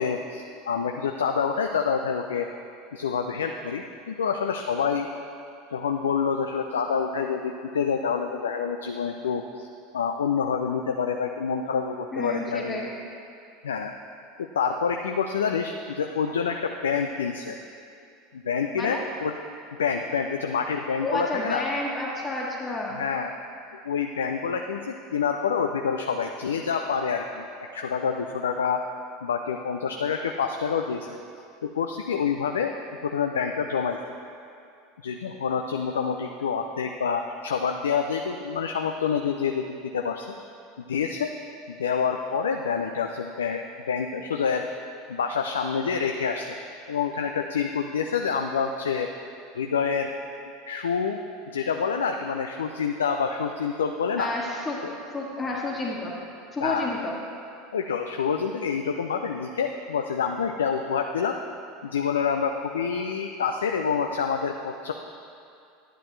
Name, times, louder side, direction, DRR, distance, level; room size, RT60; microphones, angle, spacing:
voice 1, 0.0-2.5 2.9-5.1 5.7-9.7 9.9-12.8 13.6-13.9 14.4-17.6 18.3-19.3 19.8-21.7 23.0-23.3 23.8-27.5 27.7-28.8 29.2-31.2 31.6-32.7 33.0-34.0 35.0-40.3 40.9-41.3 41.7-44.7 45.1-46.6 46.9-49.1 49.5-50.1 50.7-51.2 51.5-54.3 54.8-54.9 56.6-56.9 57.7-61.4 61.8-64.9, left 6 dB, 75° left, 4 dB, 0.4 m, -27 dB
voice 2, 12.1-12.9 18.7-19.0 21.0-23.0 54.2-54.8 55.1-56.1 56.5-57.1, left 2 dB, 20° left, -7 dB, 1.5 m, -30 dB
11.0 x 10.0 x 3.2 m, 2.5 s
figure-of-eight pair, 80°, 0 cm